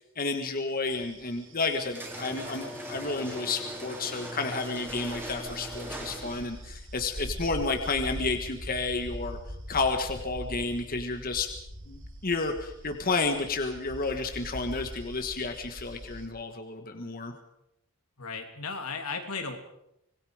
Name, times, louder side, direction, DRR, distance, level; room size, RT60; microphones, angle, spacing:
voice 1, 0.1-9.4 9.7-11.5 11.9-17.3, left 3 dB, 40° left, 5 dB, 1.5 m, -31 dB
sound 1, 0.9-16.3, equal, 60° right, 3.0 m, -43 dB
sound 2, 1.9-6.6, right 1 dB, 10° right, 3.8 m, -39 dB
voice 2, 18.2-19.6, left 4 dB, 85° left, 4 dB, 3.1 m, -35 dB
25.5 x 20.5 x 5.0 m, 0.81 s
head